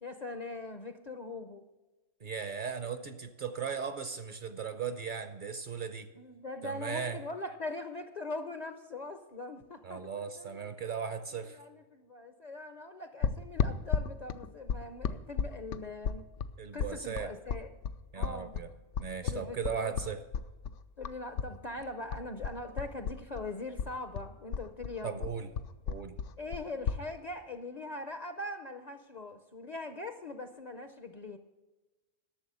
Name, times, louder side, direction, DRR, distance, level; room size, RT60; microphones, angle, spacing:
voice 1, 0.0-1.7 6.2-10.7 11.4-16.3 16.7-17.7 18.1-18.5 19.2-20.0 21.0-25.3 26.4-31.4, left 2 dB, 45° left, 8 dB, 0.6 m, -41 dB
voice 2, 2.2-6.1 6.6-7.2 9.8-11.6 16.6-17.3 18.1-18.7 19.0-20.2 25.0-25.5 25.9-26.2, right 6 dB, 50° right, 10 dB, 0.8 m, -37 dB
sound 1, 13.2-21.5 21.8-23.5 23.8-27.0, left 7 dB, 80° left, 0.9 m, -34 dB
12.0 x 6.9 x 6.8 m, 1.2 s
omnidirectional pair, 1.3 m